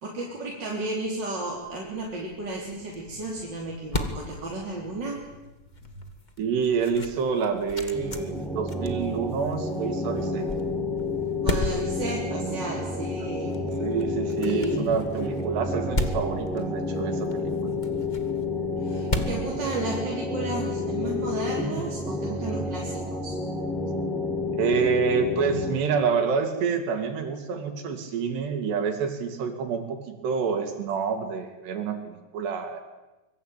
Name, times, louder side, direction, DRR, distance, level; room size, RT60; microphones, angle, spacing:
voice 1, 0.0-5.2 5.9-6.1 11.4-13.8 14.4-14.9 18.8-23.4, right 2 dB, 25° right, -2 dB, 3.7 m, -33 dB
sound 1, 1.6-20.4, left 2 dB, 85° left, 0.4 m, -36 dB
voice 2, 6.4-10.5 13.8-17.7 24.5-32.8, right 6 dB, 75° right, 6 dB, 4.9 m, -27 dB
sound 2, 7.9-25.7, left 3 dB, ahead, 3.5 m, -30 dB
25.5 x 23.0 x 9.2 m, 1.1 s
omnidirectional pair, 4.9 m